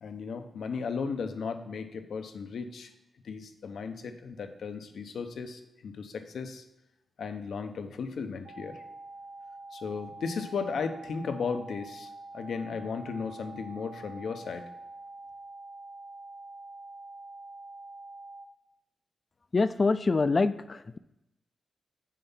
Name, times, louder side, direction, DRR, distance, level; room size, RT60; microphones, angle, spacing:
voice 1, 0.0-2.9 3.2-6.6 7.2-8.8 9.7-14.7, left 5 dB, 85° left, 7 dB, 0.8 m, -35 dB
sound 1, 8.4-18.4, right 2 dB, 85° right, 1.5 m, -46 dB
voice 2, 19.5-21.0, left 3 dB, 35° left, 14 dB, 0.4 m, -25 dB
7.4 x 5.6 x 5.6 m, 0.88 s
wide cardioid pair, 125°, 0 cm